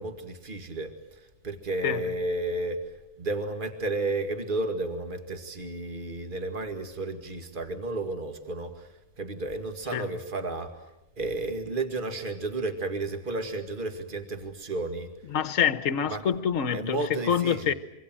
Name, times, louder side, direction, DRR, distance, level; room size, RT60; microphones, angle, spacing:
voice 1, 0.0-2.8 3.2-8.9 9.2-10.7 11.2-15.1 16.1-16.2 16.7-17.7, right 2 dB, 30° right, 2.2 m, -32 dB
voice 2, 15.3-17.0 17.3-17.7, left 8 dB, 60° left, 1.4 m, -26 dB
26.5 x 24.0 x 7.6 m
omnidirectional pair, 1.6 m